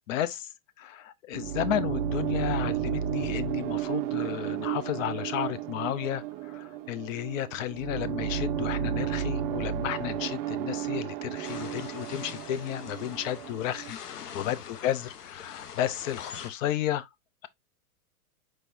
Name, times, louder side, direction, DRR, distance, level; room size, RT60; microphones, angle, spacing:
voice 1, 0.1-0.4 0.8-17.1, left 11 dB, 60° left, 0.8 m, -32 dB
sound 1, 1.3-13.9, right 10 dB, 30° right, 0.4 m, -32 dB
sound 2, 11.4-16.5, left 8 dB, 85° left, 0.9 m, -44 dB
4.6 x 4.5 x 2.5 m
hypercardioid pair, 115°, 45 cm